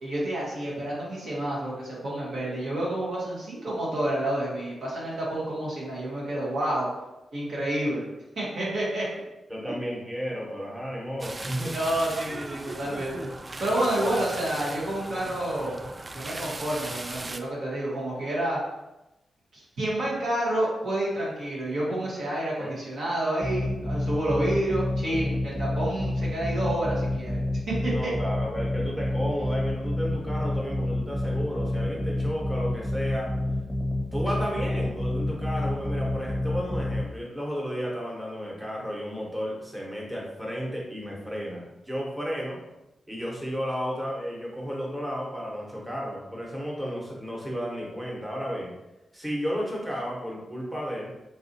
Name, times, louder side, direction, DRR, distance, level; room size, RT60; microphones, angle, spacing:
voice 1, 0.0-6.9 7.3-8.0 8.3-9.1 11.7-13.3 13.6-15.8 16.1-18.6 19.5-27.4 27.7-28.1, right 1 dB, 75° right, -6 dB, 1.2 m, -29 dB
voice 2, 9.5-11.7 22.6-22.7 27.9-33.3 34.1-42.6 43.1-48.7 49.1-51.1, equal, 15° right, -3 dB, 1.2 m, -33 dB
sound 1, 11.2-17.4, right 2 dB, 35° right, 0.3 m, -37 dB
sound 2, 23.4-37.0, left 1 dB, 5° left, 0.9 m, -29 dB
3.9 x 2.6 x 2.7 m, 0.96 s
supercardioid pair, 45°, 0 cm